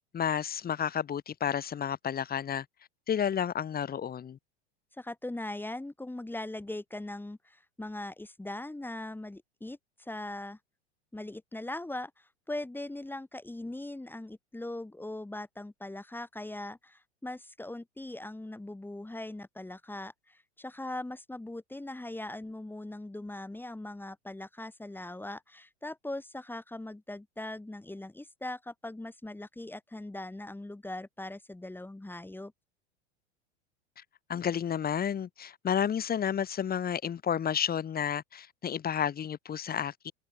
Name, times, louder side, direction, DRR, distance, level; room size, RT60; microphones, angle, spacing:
voice 1, 0.0-2.6 3.1-4.4 34.3-40.1, left 8 dB, 25° left, 3.7 m, -31 dB
voice 2, 5.0-10.6 11.1-32.5, left 1 dB, 5° left, 4.5 m, -40 dB
hypercardioid pair, 90°, 34 cm